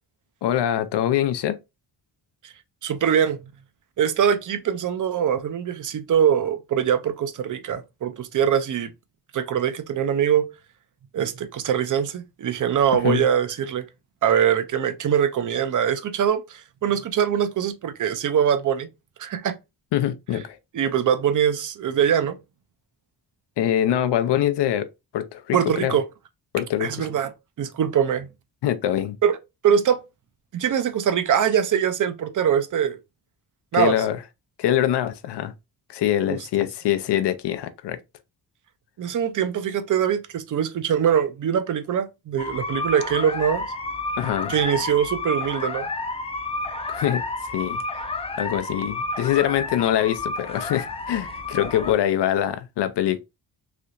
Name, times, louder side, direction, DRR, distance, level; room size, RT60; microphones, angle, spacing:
voice 1, 0.4-1.6 12.9-13.2 19.9-20.6 23.6-24.9 25.1-26.0 26.5-27.1 28.6-29.2 33.7-34.2 34.6-35.5 35.9-38.0 44.2-44.5 46.9-47.2 47.5-47.8 48.4-53.2, left 11 dB, 90° left, 0.5 m, -24 dB
voice 2, 2.8-3.4 4.0-8.9 9.3-10.5 11.1-13.8 14.2-18.9 19.2-19.6 20.7-22.4 25.5-26.0 26.8-27.3 27.6-28.3 29.2-29.4 29.6-30.0 30.5-33.0 33.7-33.9 36.3-36.4 39.0-43.7 44.5-45.9, right 8 dB, 50° right, 0.4 m, -22 dB
sound 1, 42.4-51.9, left 2 dB, 15° left, 0.3 m, -30 dB
3.3 x 2.8 x 2.5 m
wide cardioid pair, 140°, 40 cm